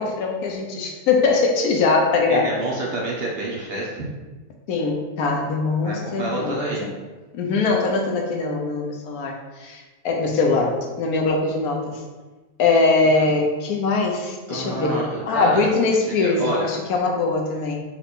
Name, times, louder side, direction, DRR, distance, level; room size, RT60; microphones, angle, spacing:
voice 1, 0.0-2.5 4.7-6.9 7.3-12.0 12.6-17.8, left 3 dB, 80° left, 1 dB, 1.2 m, -22 dB
voice 2, 2.3-4.1 5.8-6.8 10.5-10.6 13.1-13.3 14.5-15.7 16.2-16.7, right 1 dB, 50° right, -4 dB, 0.9 m, -28 dB
4.3 x 2.5 x 4.2 m, 1.2 s
omnidirectional pair, 1.5 m